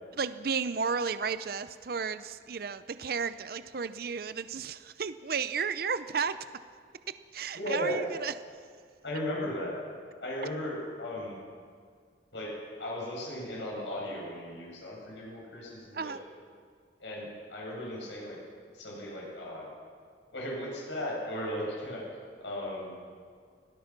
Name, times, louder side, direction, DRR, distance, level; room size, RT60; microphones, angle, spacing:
voice 1, 0.2-6.4 7.1-8.3 15.9-16.2, right 5 dB, 55° right, 12 dB, 0.6 m, -33 dB
voice 2, 7.5-7.9 9.0-9.7 10.2-11.4 12.3-12.5 12.8-16.1 17.0-18.4 18.7-19.7 20.3-22.0 22.4-23.0, left 1 dB, 90° left, -3 dB, 7.5 m, -36 dB
25.5 x 18.0 x 6.1 m, 2.1 s
head